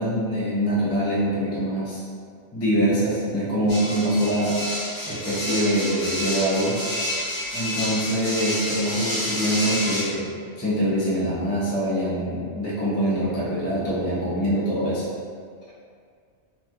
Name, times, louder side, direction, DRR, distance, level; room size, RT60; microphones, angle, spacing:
voice 1, 0.0-2.0 2.5-4.6 5.1-6.8 7.5-10.3 10.6-15.0, equal, 20° left, -10 dB, 0.5 m, -24 dB
sound 1, 3.7-10.0, equal, 50° left, 1.0 m, -29 dB
3.0 x 2.7 x 2.3 m, 2.1 s
omnidirectional pair, 1.2 m